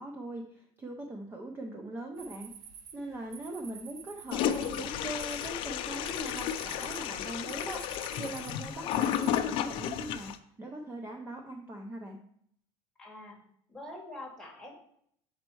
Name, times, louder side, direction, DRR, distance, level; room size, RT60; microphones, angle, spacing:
voice 1, 0.0-2.5 2.9-12.2, right 1 dB, 15° right, 3 dB, 0.6 m, -41 dB
sound 1, 2.1-9.4, right 7 dB, 70° right, 0.8 m, -50 dB
Toilet flush, 4.3-10.4, left 10 dB, 45° left, 0.5 m, -33 dB
voice 2, 13.0-13.4 13.7-14.8, left 1 dB, 5° left, -1 dB, 1.5 m, -45 dB
7.2 x 4.4 x 4.6 m, 0.67 s
cardioid pair, 160°, 12 cm